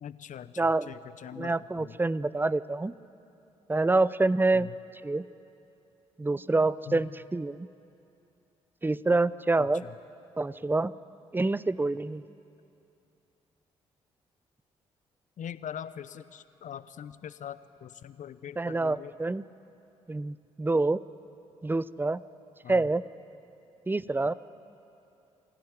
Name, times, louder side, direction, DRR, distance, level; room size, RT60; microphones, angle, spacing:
voice 1, 0.0-2.0 4.5-4.7 6.9-7.1 9.8-9.9 15.4-19.1 22.6-22.9, left 9 dB, 55° left, 15 dB, 0.9 m, -42 dB
voice 2, 0.6-0.9 1.4-2.9 3.7-4.7 5.0-5.2 6.2-7.7 8.8-9.8 10.4-10.9 11.3-12.2 18.6-19.5 20.1-21.0 21.6-22.2 22.7-23.0 23.9-24.3, right 2 dB, 15° right, 18 dB, 0.6 m, -26 dB
24.0 x 16.0 x 9.8 m, 2.8 s
hypercardioid pair, 40°, 15 cm